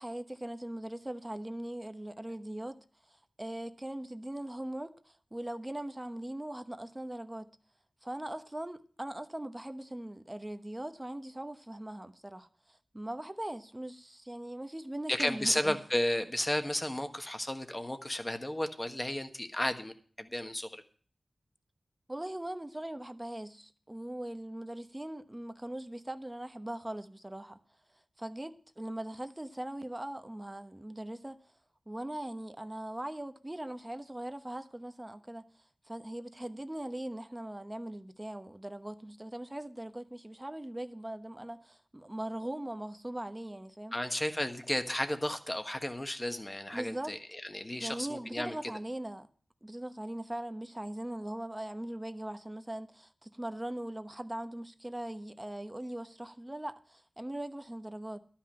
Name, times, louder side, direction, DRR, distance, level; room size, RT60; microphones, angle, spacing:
voice 1, 0.0-2.8 3.1-7.5 8.0-15.8 22.1-27.6 28.2-31.4 31.9-35.5 35.8-44.0 46.7-47.2 47.8-49.3 49.6-58.2, right 1 dB, 15° right, 0.9 m, -40 dB
voice 2, 15.1-20.8 43.9-48.7, left 1 dB, 20° left, 1.4 m, -33 dB
12.5 x 5.8 x 8.6 m
wide cardioid pair, 85°, 0 cm